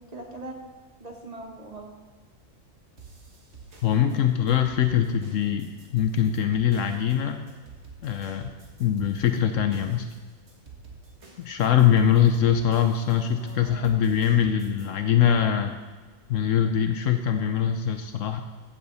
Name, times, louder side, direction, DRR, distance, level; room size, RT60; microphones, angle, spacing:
voice 1, 0.1-0.6 1.0-1.9 13.4-14.1, right 2 dB, 30° right, 1 dB, 1.6 m, -41 dB
sound 1, 3.0-14.9, right 4 dB, 55° right, 1.8 m, -49 dB
voice 2, 3.8-5.7 5.9-7.4 8.0-8.5 8.8-10.1 11.4-15.8 16.3-18.4, left 9 dB, 75° left, 7 dB, 1.0 m, -22 dB
15.5 x 6.9 x 4.1 m, 1.4 s
omnidirectional pair, 1.4 m